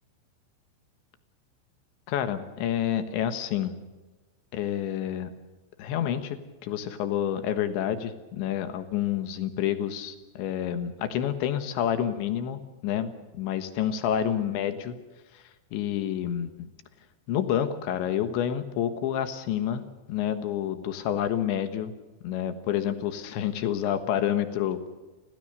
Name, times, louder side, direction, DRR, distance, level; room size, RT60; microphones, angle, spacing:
voice 1, 2.1-3.7 4.5-5.3 5.8-15.0 15.7-16.7 17.3-19.8 20.1-21.9 22.2-24.9, left 10 dB, 75° left, 10 dB, 3.6 m, -28 dB
30.0 x 16.0 x 6.8 m, 1.2 s
omnidirectional pair, 5.3 m